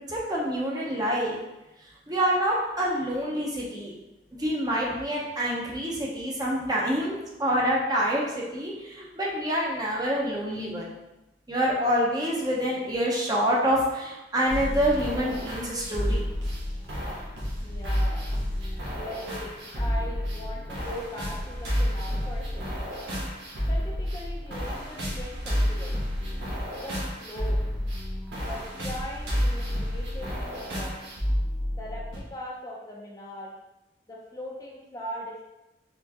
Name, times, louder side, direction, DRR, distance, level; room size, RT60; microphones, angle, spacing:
voice 1, 0.1-1.3 2.1-3.9 4.4-10.9 11.5-16.2, equal, 25° right, -4 dB, 0.8 m, -27 dB
sound 1, 14.5-32.2, equal, 80° right, 1.2 m, -30 dB
voice 2, 17.6-18.3 18.9-22.9 23.7-26.0 26.8-27.6 28.4-30.9 31.8-33.5 34.1-35.5, left 1 dB, 20° left, -3 dB, 0.6 m, -40 dB
4.4 x 3.5 x 2.9 m, 0.97 s
head